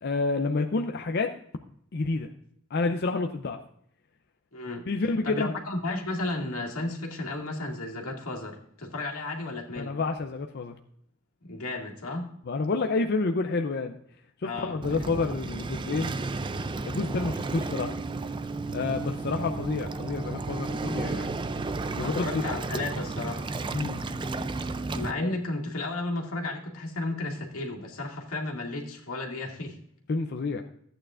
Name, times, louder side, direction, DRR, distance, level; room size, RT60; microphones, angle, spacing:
voice 1, 0.0-1.3 1.9-2.3 2.7-3.6 4.9-5.5 9.8-10.8 12.5-14.0 14.4-16.2 16.9-17.9 18.2-18.3 18.7-21.3 22.0-22.4 23.7-24.0 25.2-25.4 30.1-30.6, left 3 dB, 50° left, 5 dB, 0.5 m, -29 dB
voice 2, 4.5-10.0 11.4-12.3 14.4-14.8 22.0-23.5 24.9-29.8, left 2 dB, 85° left, 0 dB, 2.1 m, -33 dB
Waves surf, 14.8-25.1, right 3 dB, 20° right, 0.4 m, -33 dB
14.0 x 9.0 x 2.4 m, 0.69 s
head